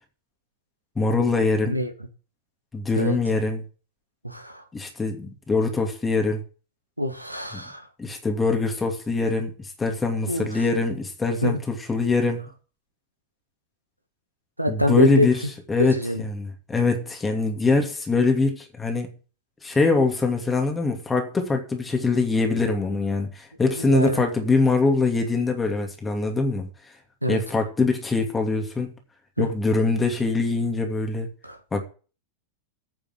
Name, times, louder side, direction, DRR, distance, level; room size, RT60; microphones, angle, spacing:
voice 1, 1.0-1.8 2.7-3.6 4.7-6.4 7.5-7.6 8.0-12.5 14.7-15.4 15.7-19.1 19.6-26.7 27.3-29.0 29.4-31.3 31.7-31.8, left 3 dB, 15° left, 2.6 m, -23 dB
voice 2, 4.2-4.6 7.0-7.9 10.3-10.6 11.4-11.6 14.6-15.3 15.8-16.2 23.7-24.2 27.2-27.4 29.4-29.5 31.4-31.6, left 1 dB, 90° right, 1.9 m, -24 dB
9.6 x 6.9 x 7.8 m
figure-of-eight pair, 90°, 0 cm